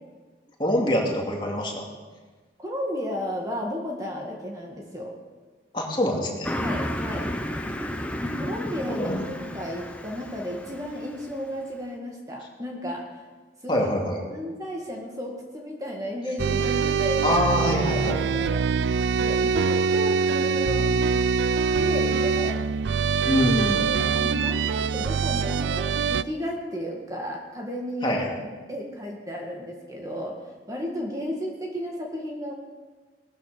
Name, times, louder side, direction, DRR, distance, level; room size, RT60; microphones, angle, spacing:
voice 1, 0.6-1.9 5.7-6.5 8.9-9.3 13.7-14.2 17.2-18.2 23.2-23.9 28.0-28.3, left 1 dB, 25° left, -1 dB, 2.5 m, -24 dB
voice 2, 2.6-5.2 6.6-7.3 8.2-13.0 13.6-13.9 14.3-17.4 17.9-18.6 19.2-20.9 21.8-22.6 23.8-30.4 30.7-32.5, equal, 20° right, 0 dB, 1.9 m, -33 dB
Car passing by, 6.4-11.4, equal, 10° left, 0.9 m, -32 dB
sound 1, 16.4-26.2, right 5 dB, 85° right, 0.4 m, -24 dB
18.5 x 13.5 x 5.1 m, 1.4 s
head